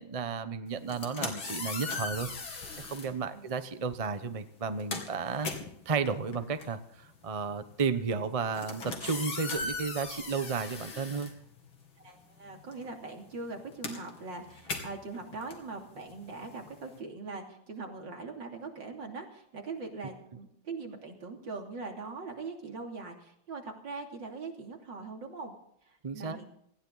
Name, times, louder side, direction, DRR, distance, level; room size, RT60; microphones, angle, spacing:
voice 1, 0.0-5.5 5.8-11.3 26.0-26.4, right 5 dB, 35° right, 10 dB, 0.6 m, -33 dB
sound 1, 0.8-3.1 4.0-4.2 4.5-12.1 12.3-17.0, left 3 dB, 80° left, 3.5 m, -39 dB
voice 2, 12.0-25.5 25.8-26.6, right 3 dB, 65° right, 2 dB, 3.6 m, -41 dB
19.0 x 16.0 x 4.0 m, 0.72 s
omnidirectional pair, 2.2 m